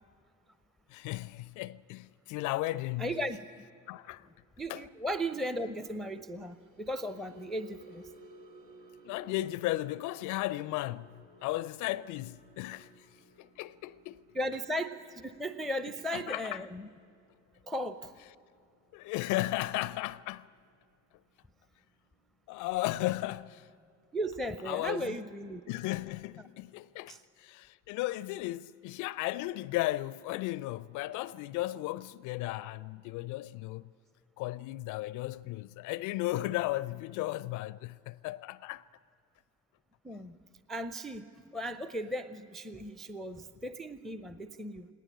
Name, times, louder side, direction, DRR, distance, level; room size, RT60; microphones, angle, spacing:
voice 1, 0.9-3.1 3.9-4.3 4.7-4.8 9.0-13.1 13.4-14.2 16.1-16.6 18.9-20.5 22.5-23.7 24.7-25.1 25.7-33.8 34.4-38.8, left 17 dB, 50° left, 0.4 m, -35 dB
voice 2, 3.0-3.4 4.6-8.0 14.3-16.9 17.7-18.1 24.1-25.6 27.1-27.2 40.0-40.4 40.7-41.3 41.5-44.9, equal, ahead, 0.5 m, -36 dB
sound 1, 6.2-22.6 23.0-23.3 23.6-23.8, right 1 dB, 70° right, 1.7 m, -59 dB
19.0 x 18.0 x 9.8 m
figure-of-eight pair, 50°, 41 cm